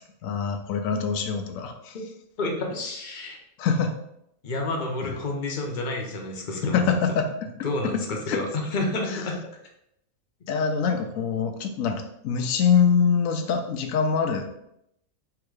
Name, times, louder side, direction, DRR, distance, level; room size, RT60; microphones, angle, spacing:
voice 1, 0.2-1.9 3.6-3.9 5.0-5.1 6.6-7.3 8.3-8.4 10.5-14.6, left 6 dB, 75° left, 5 dB, 1.0 m, -24 dB
voice 2, 2.4-3.4 4.4-6.9 7.6-9.4, left 2 dB, 40° left, 1 dB, 0.8 m, -29 dB
3.5 x 2.9 x 4.6 m, 0.78 s
omnidirectional pair, 1.4 m